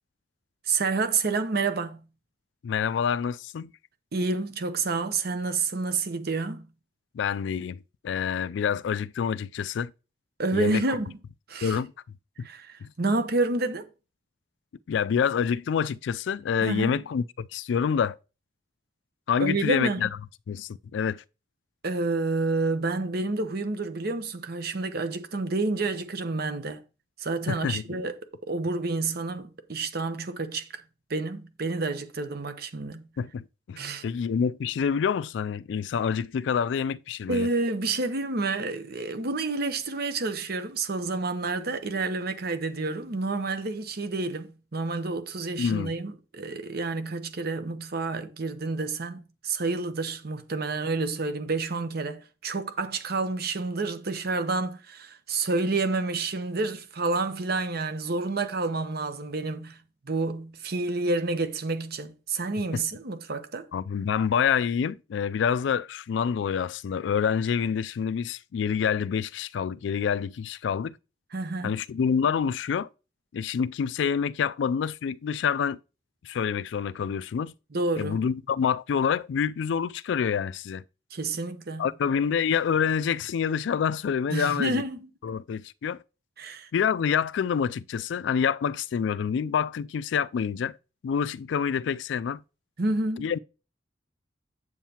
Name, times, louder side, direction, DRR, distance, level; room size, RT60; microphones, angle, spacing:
voice 1, 0.7-2.0 4.1-6.7 10.4-11.2 11.5-11.8 12.4-13.9 16.6-17.0 19.4-20.1 21.8-26.8 27.2-28.2 28.4-30.8 31.1-33.0 33.8-34.0 37.3-59.8 60.1-63.7 71.3-71.8 77.7-78.2 81.1-81.9 84.3-85.1 86.4-86.7 92.8-93.3, right 3 dB, 60° right, 0.9 m, -29 dB
voice 2, 2.6-3.7 7.1-7.8 8.0-9.9 10.5-10.8 11.6-11.9 12.4-12.5 12.8-12.9 14.9-18.2 19.3-20.1 20.5-21.2 27.5-27.8 33.2-37.5 45.6-45.9 62.7-62.8 63.7-71.0 71.6-72.9 73.3-75.8 76.2-77.5 78.0-80.8 81.8-84.8 85.2-86.0 86.7-90.8 91.0-92.4 93.2-93.4, left 7 dB, 75° left, 0.3 m, -27 dB
8.0 x 7.3 x 2.9 m
head